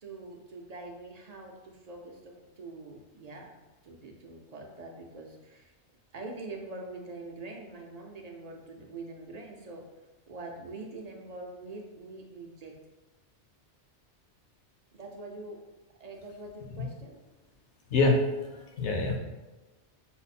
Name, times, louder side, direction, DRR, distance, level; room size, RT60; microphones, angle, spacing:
voice 1, 0.0-3.5 3.8-5.7 6.1-9.9 10.3-12.8 14.9-15.6 16.0-17.2, right 2 dB, 50° right, 2 dB, 0.5 m, -44 dB
voice 2, 17.9-19.2, left 2 dB, 75° left, 2 dB, 1.0 m, -26 dB
5.9 x 2.0 x 4.1 m, 1.2 s
omnidirectional pair, 1.2 m